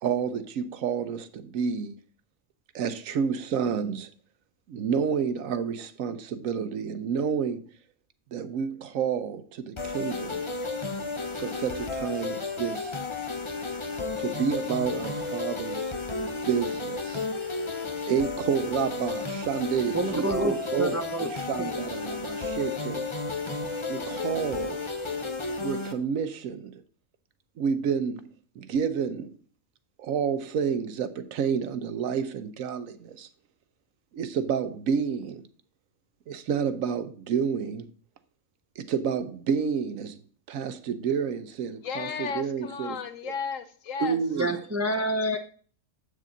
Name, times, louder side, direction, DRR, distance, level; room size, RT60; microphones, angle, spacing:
voice 1, 0.0-2.0 2.7-4.1 4.7-7.7 8.3-10.4 11.4-13.0 14.2-15.9 16.5-17.3 18.1-23.1 23.9-24.8 25.6-26.7 27.6-29.4 30.0-33.3 34.1-35.4 36.3-37.9 38.8-40.2 40.5-43.0 44.0-44.5, right 7 dB, 80° right, 1.1 m, -29 dB
sound 1, 9.8-25.9, left 3 dB, 30° left, 0.7 m, -33 dB
voice 2, 19.9-21.3 21.6-21.8 44.4-45.4, right 1 dB, 25° right, 0.3 m, -28 dB
voice 3, 41.8-44.2, left 6 dB, 70° left, 1.2 m, -34 dB
7.6 x 6.6 x 3.9 m
omnidirectional pair, 1.4 m